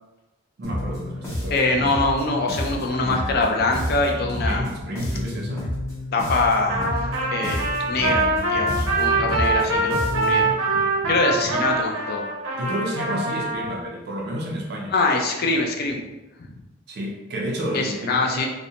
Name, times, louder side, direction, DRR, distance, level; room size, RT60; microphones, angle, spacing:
sound 1, 0.6-10.5, left 1 dB, 15° left, 0.8 m, -30 dB
voice 1, 0.6-1.6 4.4-5.7 9.3-9.8 12.6-14.9 16.9-18.5, equal, 50° right, -1 dB, 0.4 m, -31 dB
voice 2, 1.5-4.7 6.1-6.8 7.3-10.5 11.1-12.2 14.9-16.0 16.4-16.5 17.7-18.5, left 3 dB, 50° left, 2 dB, 0.4 m, -23 dB
Trumpet, 6.7-13.8, right 2 dB, 85° right, 0.7 m, -24 dB
2.6 x 2.1 x 2.8 m, 1.1 s
head